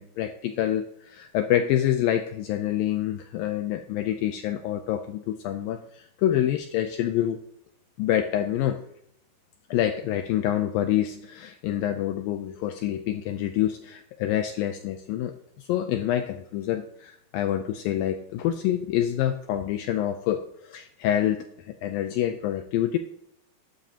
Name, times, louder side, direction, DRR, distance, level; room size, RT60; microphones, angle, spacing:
voice 1, 0.0-7.4 8.0-8.8 9.7-23.0, left 11 dB, 80° left, 7 dB, 2.1 m, -27 dB
12.0 x 11.5 x 2.8 m, 0.73 s
omnidirectional pair, 4.7 m